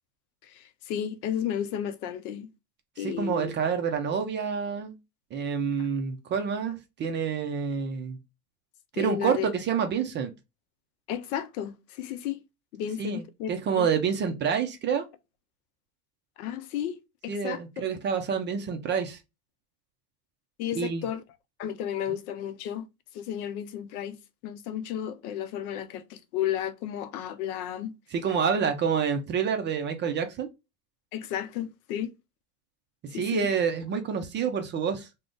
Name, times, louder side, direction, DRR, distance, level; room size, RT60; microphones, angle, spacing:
voice 1, 0.4-2.5 3.0-3.6 9.0-9.5 11.1-12.4 12.7-13.5 13.8-13.9 16.4-17.0 17.2-17.8 20.6-21.2 21.6-22.9 23.1-27.9 31.1-32.1 33.1-33.5, left 10 dB, 70° left, 0.6 m, -33 dB
voice 2, 3.0-5.0 5.3-8.2 8.9-10.3 13.0-13.2 13.5-15.0 17.3-19.2 20.8-21.0 28.1-30.5 33.1-35.1, right 6 dB, 25° right, 0.4 m, -28 dB
2.4 x 2.1 x 3.5 m
hypercardioid pair, 105°, 47 cm